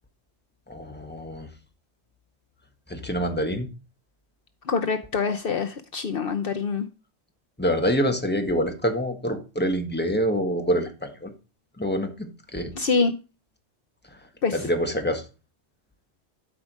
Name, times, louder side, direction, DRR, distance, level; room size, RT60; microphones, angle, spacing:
voice 1, 0.7-1.5 2.9-3.7 7.6-11.3 11.8-12.7 14.5-15.2, equal, 10° left, 4 dB, 1.6 m, -26 dB
voice 2, 4.7-6.9 12.8-13.1 14.4-14.5, left 5 dB, 60° left, 7 dB, 0.9 m, -25 dB
12.5 x 5.0 x 6.2 m, 0.32 s
omnidirectional pair, 1.1 m